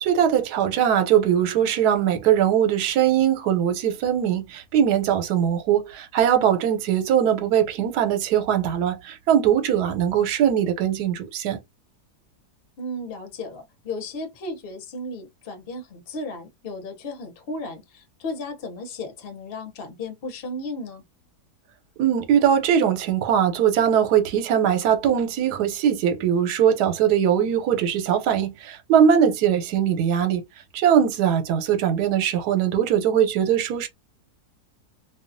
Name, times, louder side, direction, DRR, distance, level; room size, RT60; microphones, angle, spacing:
voice 1, 0.0-11.6 22.0-30.4 30.7-33.9, right 9 dB, 80° right, 1.2 m, -21 dB
voice 2, 12.8-21.0, left 2 dB, 45° left, 0.8 m, -34 dB
2.7 x 2.3 x 2.5 m
omnidirectional pair, 1.7 m